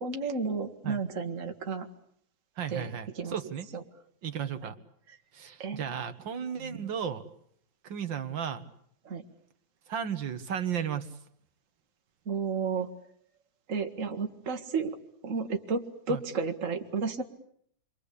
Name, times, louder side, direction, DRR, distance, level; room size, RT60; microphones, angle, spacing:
voice 1, 0.0-1.9 2.7-2.9 3.2-3.3 3.7-3.8 5.6-5.8 6.6-6.9 9.0-9.2 12.3-12.9 13.7-15.0 15.2-17.2, right 5 dB, 40° right, 5 dB, 2.2 m, -32 dB
voice 2, 2.6-3.7 4.2-4.8 5.3-7.2 7.8-8.6 9.9-11.1 16.1-16.2, right 8 dB, 75° right, 10 dB, 2.4 m, -34 dB
29.5 x 24.0 x 8.4 m, 0.67 s
omnidirectional pair, 2.1 m